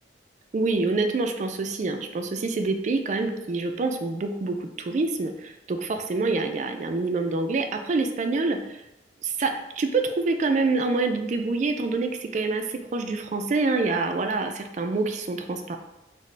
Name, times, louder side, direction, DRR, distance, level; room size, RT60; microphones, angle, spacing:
voice 1, 0.5-8.8 9.2-15.8, right 3 dB, 40° right, 6 dB, 0.3 m, -26 dB
4.1 x 2.1 x 3.2 m, 0.94 s
head